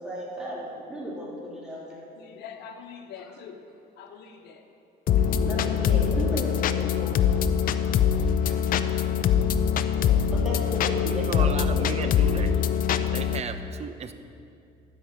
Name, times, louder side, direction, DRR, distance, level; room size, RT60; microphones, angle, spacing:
voice 1, 0.0-2.0 3.2-3.3 5.2-7.5 8.2-8.8 10.0-12.0 12.2-12.5 12.8-13.1, equal, 5° right, -6 dB, 3.1 m, -36 dB
voice 2, 2.2-3.6 4.0-4.7, left 7 dB, 80° left, 3 dB, 1.1 m, -43 dB
sound 1, 5.1-13.4, left 8 dB, 55° left, 0.5 m, -23 dB
voice 3, 11.0-12.5 13.0-14.1, right 6 dB, 40° right, 9 dB, 0.7 m, -34 dB
12.0 x 5.4 x 8.0 m, 2.5 s
cardioid pair, 110°, 17 cm